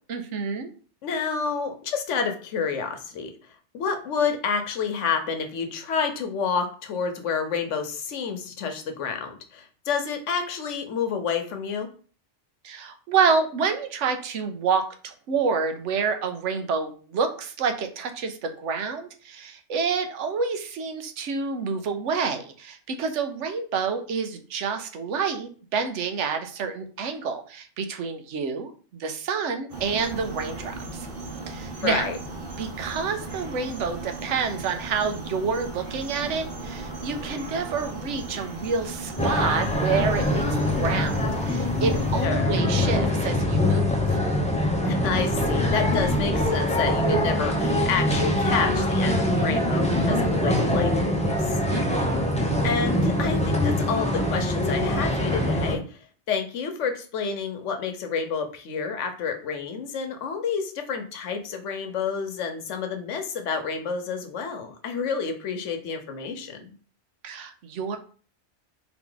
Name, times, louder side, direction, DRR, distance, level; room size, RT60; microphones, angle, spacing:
voice 1, 0.1-0.7 12.6-31.1 31.5-32.1 32.6-41.2 41.4-44.2 51.7-52.3 67.2-68.0, right 5 dB, 85° right, 7 dB, 1.0 m, -28 dB
voice 2, 1.0-3.3 3.7-11.9 31.8-32.2 42.2-42.6 44.8-51.6 52.6-66.7, left 6 dB, 85° left, 6 dB, 1.1 m, -29 dB
sound 1, 29.7-42.3, right 2 dB, 55° right, 1.0 m, -37 dB
sound 2, 39.2-55.7, left 1 dB, 10° left, 0.4 m, -23 dB
4.0 x 2.9 x 3.8 m, 0.40 s
omnidirectional pair, 1.2 m